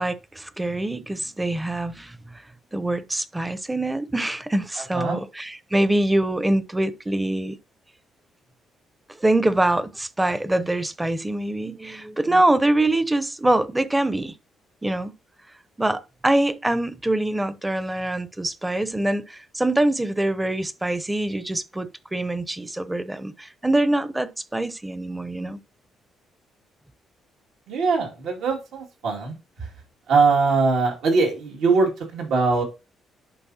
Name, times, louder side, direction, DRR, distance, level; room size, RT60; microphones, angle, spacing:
voice 1, 0.0-2.2 2.7-7.6 9.2-14.3 14.8-15.1 15.8-25.6, right 1 dB, 10° right, 0.6 m, -24 dB
voice 2, 27.7-29.4 30.1-32.6, right 4 dB, 80° right, 2.2 m, -21 dB
11.0 x 4.4 x 2.8 m
cardioid pair, 90°, 0 cm